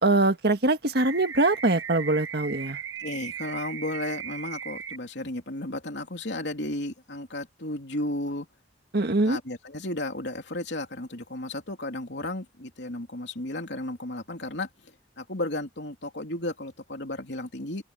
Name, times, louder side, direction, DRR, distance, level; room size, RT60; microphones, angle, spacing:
voice 1, 0.0-2.8 8.9-9.4, right 2 dB, 60° right, 1.8 m, -23 dB
sound 1, 1.0-5.0, right 7 dB, 90° right, 1.8 m, -37 dB
voice 2, 3.0-8.5 9.2-17.8, left 1 dB, 65° left, 3.4 m, -34 dB
head